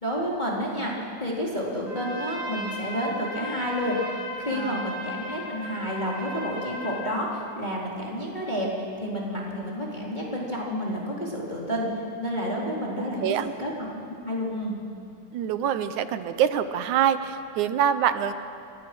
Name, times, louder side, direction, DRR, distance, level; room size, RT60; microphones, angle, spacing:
voice 1, 0.0-4.0 4.4-14.8, equal, 15° left, -4 dB, 3.9 m, -30 dB
Trumpet, 1.8-7.3, left 1 dB, 80° left, 8.3 m, -36 dB
voice 2, 13.0-13.5 15.3-18.3, right 9 dB, 85° right, 11 dB, 2.5 m, -25 dB
30.0 x 24.5 x 6.2 m, 2.6 s
omnidirectional pair, 3.4 m